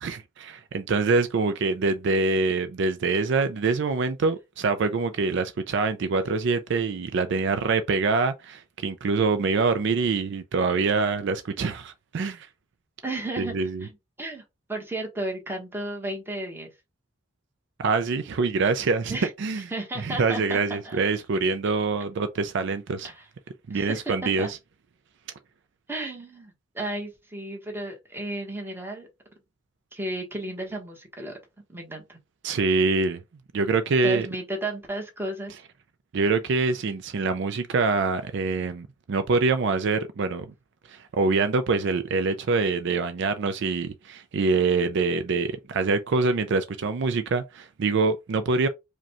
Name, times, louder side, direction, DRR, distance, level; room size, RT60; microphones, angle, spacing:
voice 1, 0.0-12.5 13.4-13.9 17.8-19.6 20.0-23.1 23.7-24.6 32.4-33.2 33.5-34.3 36.1-40.5 40.9-48.7, right 4 dB, 60° right, 0.4 m, -25 dB
voice 2, 13.0-14.4 14.7-16.7 19.1-19.3 19.7-21.1 23.0-23.2 23.7-24.5 25.9-29.1 29.9-31.4 31.7-32.2 34.0-35.5, right 1 dB, 10° right, 1.1 m, -33 dB
4.9 x 2.3 x 2.9 m
head